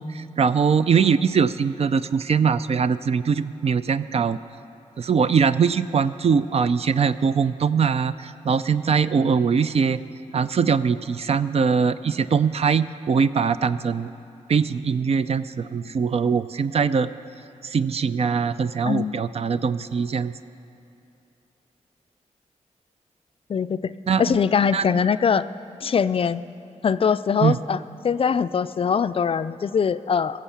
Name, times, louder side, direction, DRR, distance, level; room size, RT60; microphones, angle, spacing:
voice 1, 0.0-4.4 5.0-10.0 10.3-14.1 14.5-17.1 17.6-20.3 24.1-24.4 24.7-24.9 27.4-27.6, right 6 dB, 55° right, 14 dB, 0.4 m, -22 dB
voice 2, 18.8-19.2 23.5-23.9 24.2-25.5 25.8-26.4 26.8-30.4, left 6 dB, 45° left, 13 dB, 0.4 m, -22 dB
17.5 x 7.6 x 7.2 m, 2.8 s
cardioid pair, 70°, 13 cm